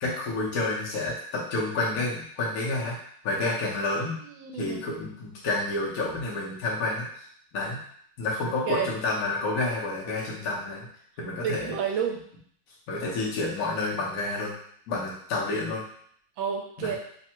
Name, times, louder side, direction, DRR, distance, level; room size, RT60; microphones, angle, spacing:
voice 1, 0.0-2.9 3.2-4.2 4.5-7.3 7.5-7.8 8.2-10.9 11.2-11.7 12.9-14.5 14.9-15.8 16.8-17.0, left 2 dB, 60° left, -5 dB, 0.9 m, -29 dB
voice 2, 4.0-4.9 8.7-8.9 11.4-12.2 16.4-17.0, right 7 dB, 75° right, 2 dB, 1.4 m, -30 dB
3.5 x 2.1 x 4.3 m, 0.63 s
omnidirectional pair, 2.2 m